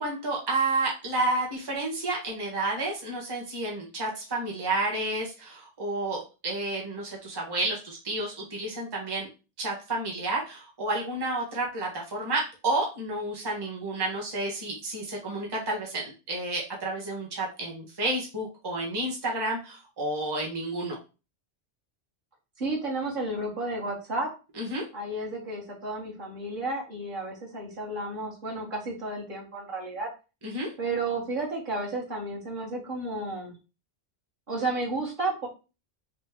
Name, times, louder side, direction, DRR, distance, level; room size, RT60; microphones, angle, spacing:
voice 1, 0.0-9.3 9.6-21.0 24.6-24.8 30.4-30.7, right 2 dB, 20° right, -2 dB, 0.9 m, -30 dB
voice 2, 22.6-24.3 24.9-30.1 30.8-33.5 34.5-35.5, right 2 dB, 50° right, -3 dB, 1.2 m, -32 dB
3.3 x 2.7 x 3.4 m, 0.31 s
omnidirectional pair, 1.2 m